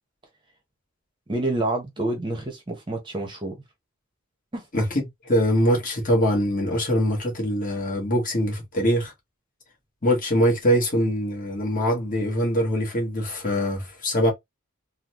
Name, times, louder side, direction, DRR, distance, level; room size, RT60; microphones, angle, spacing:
voice 1, 1.3-3.6 4.5-4.6, right 2 dB, 20° right, 0.8 m, -28 dB
voice 2, 4.7-9.1 10.0-14.3, equal, 40° left, 1.3 m, -23 dB
3.8 x 2.2 x 2.9 m
head